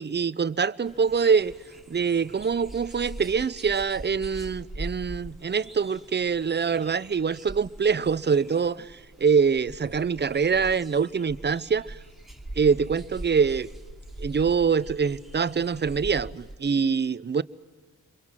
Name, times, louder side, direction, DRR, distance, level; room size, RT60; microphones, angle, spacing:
voice 1, 0.0-1.5 1.9-12.0 12.6-13.7 14.2-17.4, right 6 dB, 30° right, 0.8 m, -24 dB
sound 1, 0.8-16.6, right 1 dB, ahead, 3.1 m, -42 dB
28.5 x 23.5 x 6.0 m
supercardioid pair, 55°, 33 cm